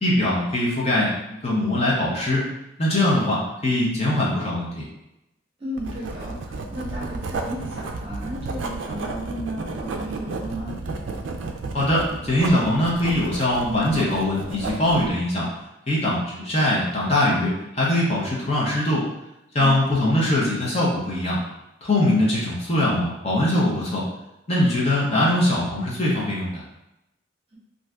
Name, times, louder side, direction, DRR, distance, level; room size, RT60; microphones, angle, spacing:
voice 1, 0.0-2.4 2.8-4.8 11.7-15.5 15.9-19.1 19.5-21.4 21.8-24.0 24.5-26.6, left 1 dB, 30° left, -5 dB, 0.7 m, -22 dB
voice 2, 5.6-10.7 13.6-13.9 19.6-19.9, equal, 30° right, -5 dB, 0.9 m, -34 dB
Writing, 5.8-15.1, right 3 dB, 65° right, 0.3 m, -32 dB
2.6 x 2.5 x 3.3 m, 0.90 s
head